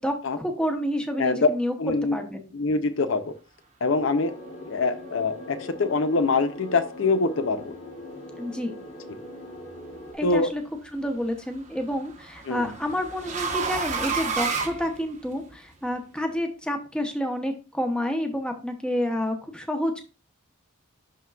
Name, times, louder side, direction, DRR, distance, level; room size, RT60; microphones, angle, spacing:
voice 1, 0.0-1.7 2.0-2.5 8.4-8.8 10.1-10.6 10.9-20.0, left 1 dB, 5° left, 4 dB, 0.9 m, -29 dB
voice 2, 1.8-2.2 2.5-3.3 3.8-4.3 4.7-7.7 10.2-10.5 12.5-12.7, left 3 dB, 60° left, 10 dB, 0.6 m, -24 dB
sound 1, 3.9-10.1, left 1 dB, 30° left, 1.5 m, -41 dB
sound 2, 9.6-10.1 11.5-15.5, right 5 dB, 35° right, 1.0 m, -31 dB
11.0 x 3.7 x 2.4 m, 0.32 s
head